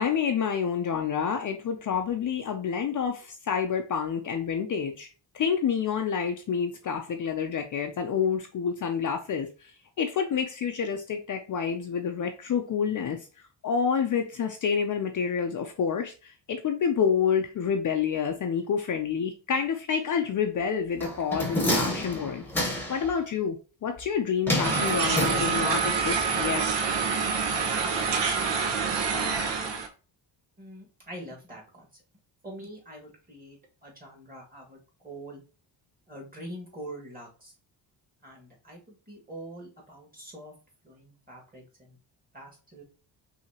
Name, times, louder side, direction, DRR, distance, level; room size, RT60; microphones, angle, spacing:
voice 1, 0.0-5.1 5.3-13.3 13.6-22.4 22.9-26.8, left 7 dB, 45° left, 0.5 m, -28 dB
sound 1, 21.0-23.1 24.5-25.9 26.2-26.3, left 1 dB, 5° left, 1.1 m, -29 dB
sound 2, 24.6-29.9, right 5 dB, 70° right, 1.0 m, -26 dB
voice 2, 30.6-31.9 32.4-35.4 36.1-37.5 38.2-40.5 40.8-42.0 42.3-42.8, right 1 dB, 20° right, 1.8 m, -44 dB
5.8 x 2.8 x 2.8 m
cardioid pair, 130°, 45 cm